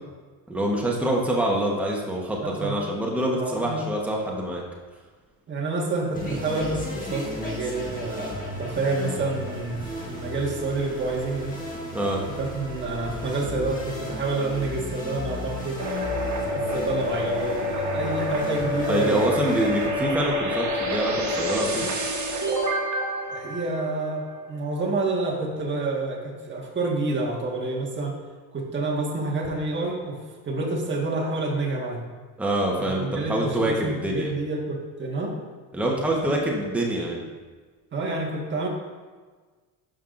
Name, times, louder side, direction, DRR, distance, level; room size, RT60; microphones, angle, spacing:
voice 1, 0.5-4.6 11.9-12.2 18.9-21.9 32.4-34.3 35.7-37.3, right 1 dB, 5° right, -2 dB, 1.2 m, -25 dB
voice 2, 2.4-2.8 3.4-3.8 5.5-9.8 10.1-11.6 12.4-15.9 16.5-19.4 23.3-28.2 28.5-30.2 30.4-32.0 32.8-35.3 37.9-38.7, right 3 dB, 25° right, -2 dB, 1.6 m, -28 dB
sound 1, 6.1-19.9, left 2 dB, 20° left, 1.6 m, -35 dB
sound 2, 15.8-24.4, left 1 dB, 45° right, 1.5 m, -28 dB
12.0 x 5.6 x 2.6 m, 1.4 s
cardioid pair, 105°, 41 cm